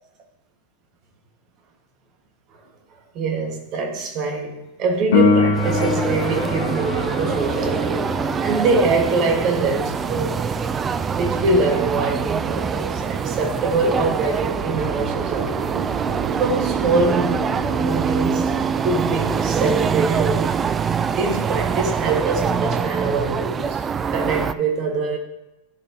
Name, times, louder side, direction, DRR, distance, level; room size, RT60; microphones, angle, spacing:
voice 1, 3.1-8.1 8.4-10.4 11.2-15.7 16.3-17.4 17.8-18.6 18.8-20.6 21.1-25.2, right 3 dB, 45° right, 1.5 m, -24 dB
Piano, 5.1-15.5 23.1-23.2, left 4 dB, 70° left, 1.5 m, -27 dB
sound 1, 5.5-24.5, right 6 dB, 25° right, 0.3 m, -24 dB
sound 2, 10.6-20.6, right 6 dB, 70° right, 0.7 m, -34 dB
11.5 x 4.3 x 2.8 m
hypercardioid pair, 95°, 0 cm